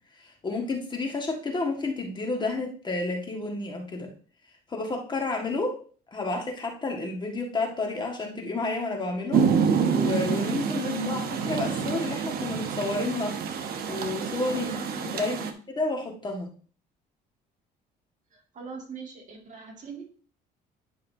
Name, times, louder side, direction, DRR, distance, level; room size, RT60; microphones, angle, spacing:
voice 1, 0.2-4.1 4.7-5.8 6.1-14.7 15.1-15.5 15.8-16.5, left 3 dB, 25° left, 1 dB, 1.7 m, -31 dB
Rain, 9.3-15.5, right 6 dB, 65° right, 1.0 m, -27 dB
voice 2, 10.8-11.3 14.5-15.5 18.3-20.0, right 1 dB, 45° right, 1 dB, 2.3 m, -39 dB
10.5 x 5.5 x 2.7 m, 0.41 s
cardioid pair, 110°, 17 cm